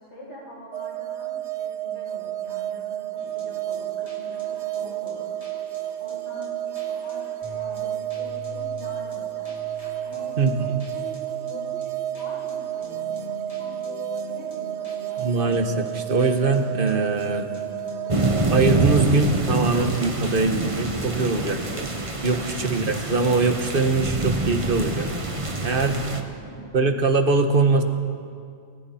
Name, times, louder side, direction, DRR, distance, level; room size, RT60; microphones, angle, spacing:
voice 1, 0.0-5.3 6.0-9.5 10.0-15.3 20.9-21.8 25.6-26.7, equal, 70° left, -6 dB, 7.9 m, -44 dB
sound 1, 0.7-19.1, right 12 dB, 75° right, 1.0 m, -31 dB
sound 2, 3.2-21.9, left 4 dB, 30° left, 3.1 m, -43 dB
voice 2, 15.2-17.5 18.0-18.2 18.5-21.9 22.2-25.1 25.6-26.0 26.7-27.8, right 3 dB, 50° right, 6 dB, 1.6 m, -22 dB
sound 3, 18.1-26.2, right 2 dB, 30° right, 1.4 m, -26 dB
30.0 x 21.0 x 4.4 m, 2.3 s
omnidirectional pair, 1.2 m